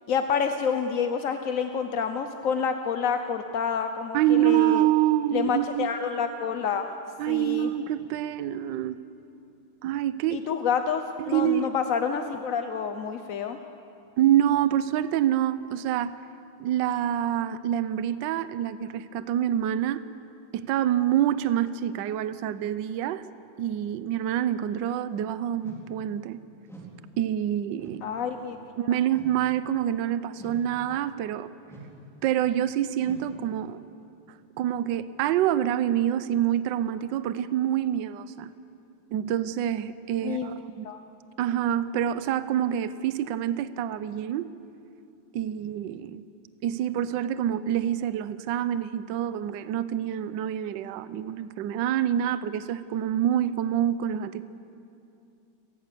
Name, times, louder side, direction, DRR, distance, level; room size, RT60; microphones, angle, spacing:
voice 1, 0.1-4.8 5.3-6.9 7.3-7.7 10.3-13.6 28.0-28.6 28.9-29.0 40.2-40.5 40.8-41.0, left 6 dB, 55° left, 7 dB, 1.0 m, -28 dB
voice 2, 4.1-5.9 7.2-9.0 9.8-10.5 11.2-11.7 14.2-16.1 16.6-20.0 20.5-23.2 23.6-26.4 27.2-28.0 28.8-31.5 32.2-33.8 34.6-38.5 39.1-40.9 41.4-44.5 45.3-46.2 46.6-54.4, right 11 dB, 70° right, 14 dB, 1.3 m, -26 dB
sound 1, 25.6-25.9 26.6-27.0 27.8-28.1 29.1-29.5 30.4-30.7 31.7-32.0 33.0-33.4, right 3 dB, ahead, 3.6 m, -45 dB
29.5 x 19.0 x 6.8 m, 2.7 s
omnidirectional pair, 2.2 m